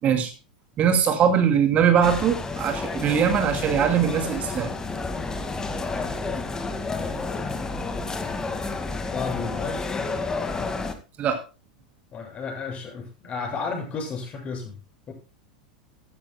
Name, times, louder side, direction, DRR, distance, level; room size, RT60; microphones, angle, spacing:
voice 1, 0.8-4.7 11.2-11.4, right 8 dB, 35° right, 6 dB, 2.4 m, -21 dB
sound 1, 2.0-10.9, left 3 dB, 15° left, 1.9 m, -30 dB
voice 2, 9.1-9.9 12.1-14.8 15.1-15.2, left 5 dB, 30° left, 0 dB, 7.4 m, -32 dB
15.5 x 13.0 x 2.2 m, 0.32 s
figure-of-eight pair, 90°, 4 cm